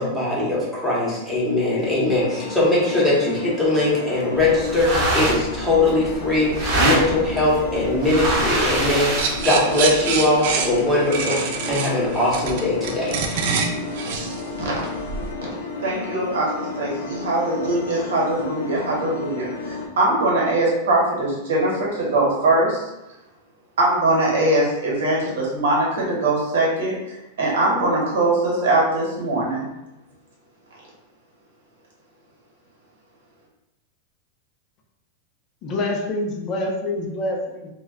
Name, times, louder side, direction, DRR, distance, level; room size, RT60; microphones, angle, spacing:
voice 1, 0.0-13.1, left 2 dB, ahead, -8 dB, 0.9 m, -21 dB
sound 1, 2.2-19.9, left 3 dB, 90° left, 0.4 m, -32 dB
sound 2, 4.4-9.5, right 1 dB, 35° right, 0.8 m, -25 dB
sound 3, 9.2-15.3, right 5 dB, 60° right, 0.3 m, -26 dB
voice 2, 15.8-22.9 23.8-26.9 27.4-29.7, right 2 dB, 90° right, -3 dB, 1.2 m, -21 dB
voice 3, 35.6-37.7, left 2 dB, 35° left, 0 dB, 0.5 m, -26 dB
2.2 x 2.1 x 3.5 m, 0.93 s
supercardioid pair, 150°, 0 cm